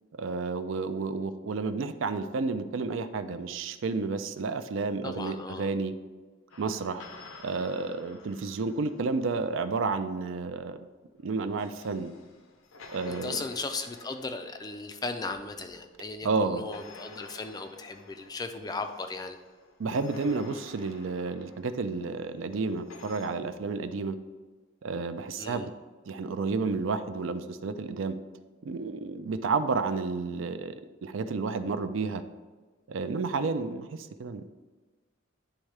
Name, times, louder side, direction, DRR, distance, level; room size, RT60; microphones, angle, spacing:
voice 1, 0.2-5.9 6.6-7.0 7.4-10.9 11.2-12.1 12.9-13.4 16.2-16.7 19.8-24.2 24.8-25.7 26.1-28.2 28.6-30.8 31.0-32.2 32.9-34.5, right 4 dB, 65° right, 11 dB, 0.4 m, -31 dB
voice 2, 5.0-5.7 13.1-19.4 25.4-25.7, left 3 dB, 20° left, 7 dB, 0.3 m, -37 dB
sound 1, 6.5-9.7 11.2-16.1 16.7-23.3, left 3 dB, 85° left, 0.7 m, -51 dB
10.0 x 3.6 x 3.3 m, 1.3 s
head